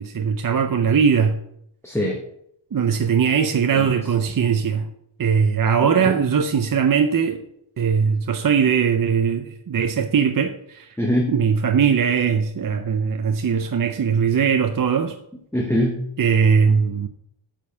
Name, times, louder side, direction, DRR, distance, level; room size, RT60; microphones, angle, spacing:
voice 1, 0.0-1.4 2.7-4.9 5.2-7.4 7.8-10.9 11.3-15.1 16.2-17.1, right 6 dB, 45° right, 0.6 m, -20 dB
voice 2, 1.8-2.2 3.7-3.9 5.8-6.3 11.0-11.4 15.5-16.1, equal, 5° left, 1.0 m, -23 dB
9.4 x 5.4 x 7.0 m
wide cardioid pair, 165°, 48 cm